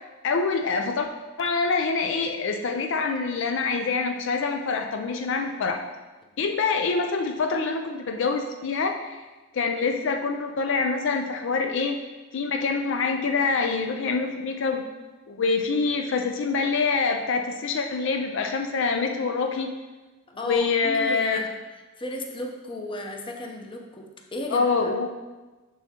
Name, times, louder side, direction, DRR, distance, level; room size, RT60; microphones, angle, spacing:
voice 1, 0.2-1.1 1.4-5.8 6.4-9.2 9.5-12.0 12.3-14.8 15.3-19.7 20.5-21.4 24.5-25.1, left 4 dB, 65° left, 4 dB, 0.4 m, -25 dB
voice 2, 20.3-21.5 22.0-24.9, left 1 dB, 25° left, 2 dB, 0.7 m, -34 dB
6.8 x 6.1 x 2.8 m, 1.2 s
head